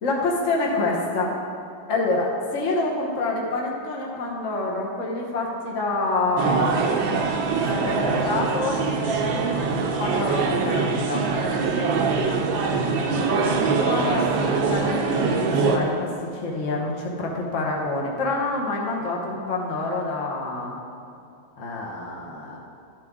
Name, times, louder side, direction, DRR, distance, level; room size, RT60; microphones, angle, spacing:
voice 1, 0.0-1.3 1.9-7.2 7.8-8.8 10.0-11.3 13.0-20.8 21.6-22.6, left 2 dB, 45° left, -2 dB, 1.2 m, -27 dB
sound 1, 6.4-15.8, right 4 dB, 80° right, 1.6 m, -23 dB
12.5 x 7.9 x 3.6 m, 2.6 s
omnidirectional pair, 2.1 m